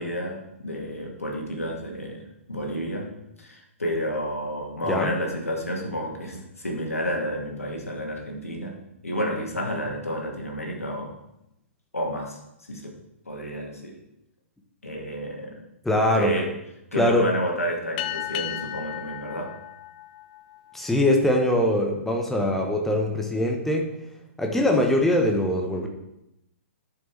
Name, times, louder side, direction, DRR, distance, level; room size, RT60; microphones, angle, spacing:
voice 1, 0.0-3.1 3.4-8.7 9.0-11.1 11.9-12.4 12.7-12.9 13.3-14.0 14.8-15.6 16.1-16.5 16.9-19.5, equal, 85° left, 0 dB, 2.2 m, -30 dB
voice 2, 15.8-16.3 17.0-17.2 20.7-23.9 24.4-25.9, left 1 dB, 5° left, 2 dB, 1.1 m, -22 dB
sound 1, 18.0-20.9, left 13 dB, 35° left, 0.5 m, -34 dB
12.5 x 6.9 x 3.4 m, 0.87 s
figure-of-eight pair, 120°, 8 cm